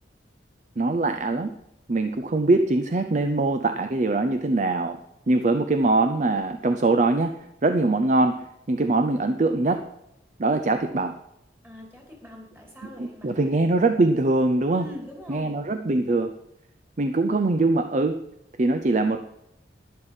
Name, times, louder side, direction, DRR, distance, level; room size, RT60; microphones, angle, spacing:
voice 1, 0.8-1.5 1.9-5.0 5.3-9.9 10.4-11.2 13.0-14.9 15.3-16.3 17.0-18.2 18.6-19.2, right 2 dB, 40° right, 8 dB, 0.5 m, -22 dB
voice 2, 11.6-13.5 14.8-15.5, left 1 dB, 15° right, -1 dB, 3.0 m, -43 dB
11.5 x 10.0 x 4.9 m, 0.82 s
head